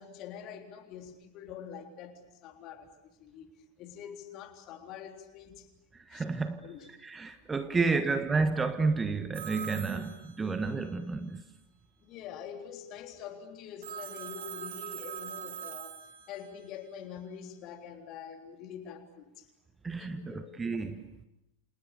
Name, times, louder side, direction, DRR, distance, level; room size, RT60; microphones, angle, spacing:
voice 1, 0.0-2.9 3.2-3.5 3.8-5.7 6.1-6.2 6.6-6.9 7.9-8.0 9.9-10.0 12.0-16.0 16.3-19.5 20.0-20.5, left 8 dB, 40° left, 3.7 m, -45 dB
voice 2, 5.9-6.6 7.0-11.4 19.8-21.2, right 4 dB, 15° right, 1.4 m, -31 dB
Telephone, 9.3-10.9 13.8-16.7, right 9 dB, 60° right, 2.7 m, -42 dB
29.5 x 28.0 x 6.8 m
figure-of-eight pair, 90°, 0 cm